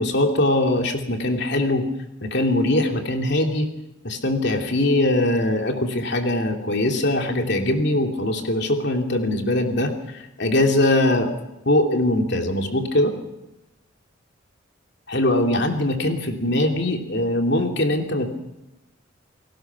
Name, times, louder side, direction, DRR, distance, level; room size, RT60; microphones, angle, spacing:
voice 1, 0.0-1.9 2.2-3.7 4.0-9.9 10.4-11.3 11.7-13.1 15.1-18.3, left 1 dB, 60° left, 3 dB, 2.8 m, -21 dB
29.5 x 18.5 x 6.0 m, 0.93 s
head